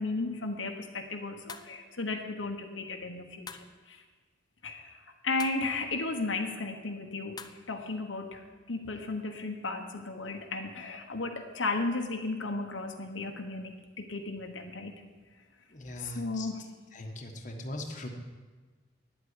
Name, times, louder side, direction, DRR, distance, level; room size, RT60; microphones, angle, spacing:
voice 1, 0.0-4.0 4.6-14.9 16.0-16.7, left 3 dB, 85° left, 3 dB, 1.3 m, -35 dB
sound 1, 1.5-1.8 3.5-3.8 5.4-5.7 7.4-7.7, left 5 dB, 20° left, 0.5 m, -45 dB
voice 2, 15.7-16.5 16.9-18.1, left 1 dB, 40° left, 2 dB, 1.4 m, -40 dB
9.9 x 8.3 x 9.8 m, 1.3 s
head